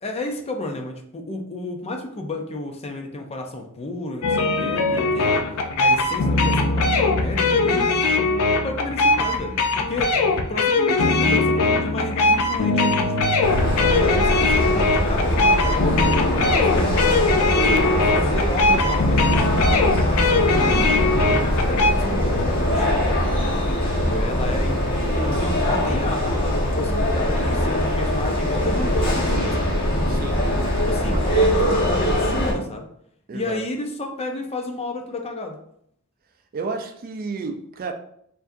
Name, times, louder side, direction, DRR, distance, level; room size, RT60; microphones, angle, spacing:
voice 1, 0.0-7.9 8.6-13.4 13.8-20.7 21.1-29.7 30.9-32.9 33.3-35.6, left 2 dB, 30° left, 0.5 m, -32 dB
sound 1, 4.2-21.9, left 3 dB, 75° left, 0.5 m, -20 dB
sound 2, 13.4-32.5, equal, 45° left, 1.2 m, -22 dB
voice 2, 30.1-30.5 31.1-31.2 33.3-33.6 36.5-37.9, right 4 dB, 40° right, 0.4 m, -31 dB
4.8 x 2.7 x 2.5 m
head